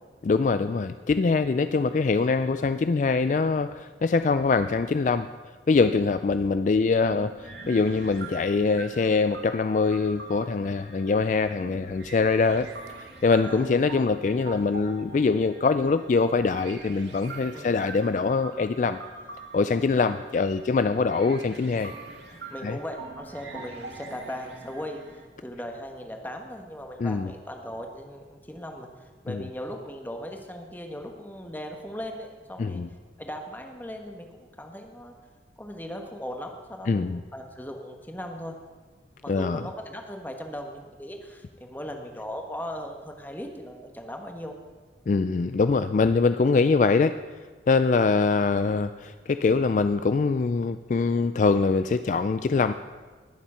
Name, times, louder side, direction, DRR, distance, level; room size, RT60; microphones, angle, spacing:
voice 1, 0.2-5.3 5.7-12.7 13.0-19.0 19.5-21.9 22.6-22.8 27.0-27.3 29.3-29.4 32.6-32.9 36.9-37.2 39.3-39.6 45.1-47.2 47.7-52.7, left 4 dB, 45° left, 11 dB, 0.3 m, -23 dB
sound 1, 7.1-25.3, right 3 dB, 75° right, 2.1 m, -44 dB
voice 2, 13.4-13.7 17.5-17.9 19.7-20.2 22.3-28.9 29.2-32.8 33.2-35.1 35.6-38.6 39.2-44.6, equal, 10° left, 3 dB, 1.3 m, -38 dB
20.0 x 7.3 x 5.7 m, 1.4 s
head